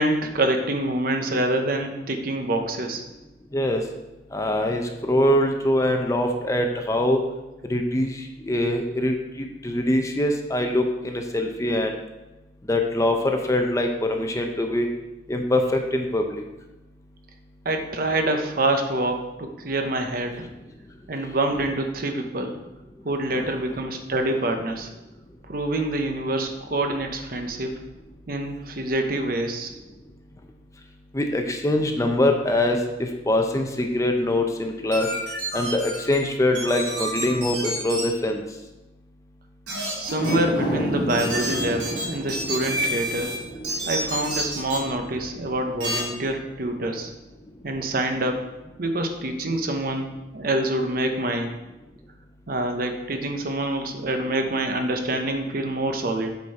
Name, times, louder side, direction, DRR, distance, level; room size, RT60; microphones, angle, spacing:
voice 1, 0.0-3.0 17.6-20.5 21.1-22.6 23.0-24.9 25.5-27.7 28.3-29.7 40.0-43.3 43.9-47.1 47.6-48.5 48.8-51.5 52.5-56.3, right 1 dB, 55° right, 5 dB, 0.9 m, -26 dB
voice 2, 3.5-3.8 4.3-7.2 7.6-12.0 12.7-14.9 15.3-16.4 23.3-23.5 31.1-35.1 35.5-38.4, left 1 dB, 20° left, 3 dB, 0.6 m, -23 dB
sound 1, 34.9-36.2 36.5-38.0 39.7-40.3 41.1-43.4 43.6-44.8 45.8-46.0, right 1 dB, 75° right, 2.7 m, -29 dB
sound 2, 40.1-46.6 47.0-47.1, equal, 70° left, 1.6 m, -32 dB
8.2 x 4.5 x 4.8 m, 1.0 s
head